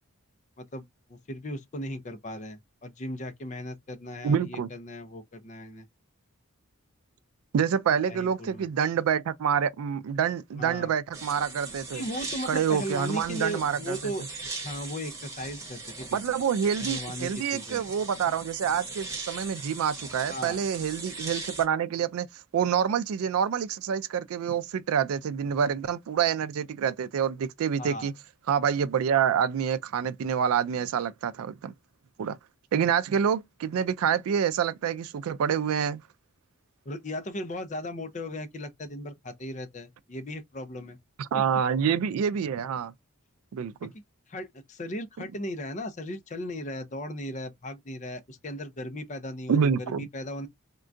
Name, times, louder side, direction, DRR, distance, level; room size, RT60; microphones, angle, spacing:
voice 1, 0.6-5.9 8.1-8.7 10.6-10.9 11.9-14.2 14.6-16.2 16.8-17.9 20.3-20.6 27.8-28.1 36.9-41.0 43.8-43.9 44.3-50.5, left 1 dB, 35° left, 0.5 m, -37 dB
voice 2, 4.2-4.7 7.5-12.0 12.5-14.1 16.1-22.3 22.5-28.1 28.5-31.7 32.2-32.4 32.7-36.0 41.2-42.9 43.5-43.9 49.5-50.1, right 7 dB, 80° right, 0.3 m, -27 dB
sound 1, 11.1-21.6, right 3 dB, 15° right, 1.0 m, -39 dB
3.6 x 2.3 x 2.4 m
head